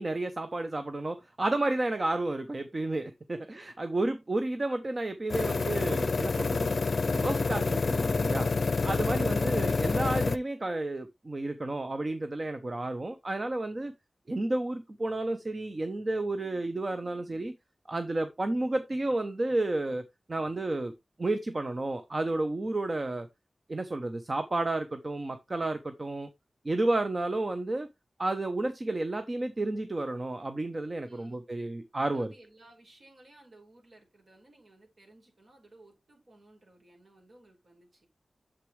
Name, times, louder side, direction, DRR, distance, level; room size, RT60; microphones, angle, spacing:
voice 1, 0.0-6.7 7.1-8.5 8.8-13.9 14.3-17.5 17.9-20.0 20.3-20.9 21.2-23.3 23.7-26.3 26.6-27.9 28.2-32.3, right 2 dB, 40° right, 0.9 m, -31 dB
sound 1, 5.3-10.4, left 4 dB, 65° left, 0.5 m, -28 dB
voice 2, 31.0-31.4 32.0-38.1, right 2 dB, 60° right, 5.5 m, -58 dB
8.2 x 7.4 x 3.2 m
wide cardioid pair, 65°, 0 cm